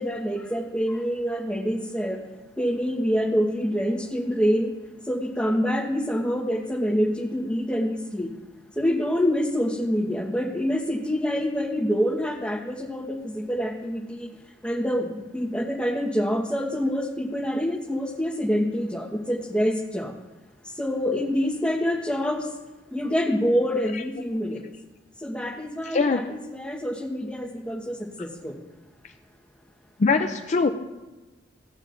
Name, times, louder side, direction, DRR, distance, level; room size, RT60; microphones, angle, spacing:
voice 1, 0.0-2.2 2.6-4.7 5.1-8.3 8.8-14.3 14.6-20.1 20.8-22.5 22.9-24.6 25.2-28.6, equal, 5° left, 0 dB, 1.1 m, -26 dB
voice 2, 25.8-26.3 30.0-30.7, left 4 dB, 40° left, 6 dB, 0.4 m, -22 dB
16.5 x 8.5 x 2.5 m, 1.1 s
head